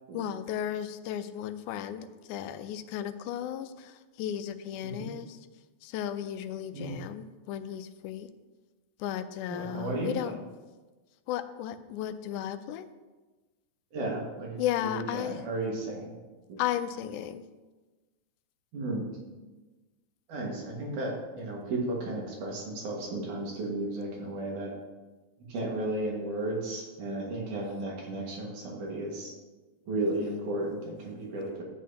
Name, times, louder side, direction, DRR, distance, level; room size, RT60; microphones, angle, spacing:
voice 1, 0.1-5.4 5.8-8.3 9.0-10.4 11.3-12.9 14.6-15.4 16.6-17.4 30.2-30.4, left 10 dB, 85° left, 10 dB, 2.1 m, -34 dB
voice 2, 9.5-10.1 13.9-14.6 14.9-16.1 16.5-16.6 18.7-19.1 20.3-24.7 25.5-29.3 29.9-31.6, right 2 dB, 80° right, -2 dB, 3.3 m, -34 dB
12.0 x 8.3 x 2.8 m, 1.2 s
omnidirectional pair, 3.5 m